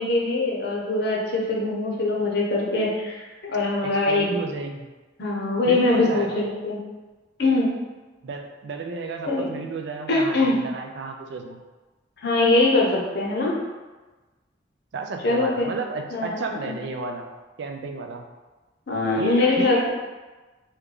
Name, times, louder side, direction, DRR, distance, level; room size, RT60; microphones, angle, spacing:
voice 1, 0.0-4.3 5.2-6.8 7.4-7.7 9.3-9.5 10.1-10.5 12.2-13.5 15.2-15.7 16.1-16.3 18.9-19.9, left 2 dB, 60° left, -3 dB, 0.7 m, -22 dB
voice 2, 3.8-4.9 5.6-6.4 8.2-11.6 14.9-17.3 17.6-18.3 19.2-19.9, right 3 dB, 60° right, 4 dB, 0.4 m, -32 dB
3.3 x 2.2 x 3.7 m, 1.2 s
head